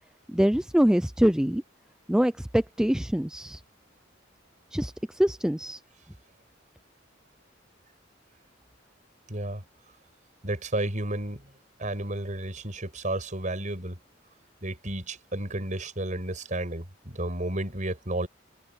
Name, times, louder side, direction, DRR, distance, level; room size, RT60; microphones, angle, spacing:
voice 1, 0.3-1.6 2.1-3.6 4.7-5.8, equal, 5° right, 0.4 m, -24 dB
voice 2, 9.3-9.6 10.4-11.5 11.8-14.0 14.6-18.3, right 1 dB, 40° right, 5.9 m, -32 dB
head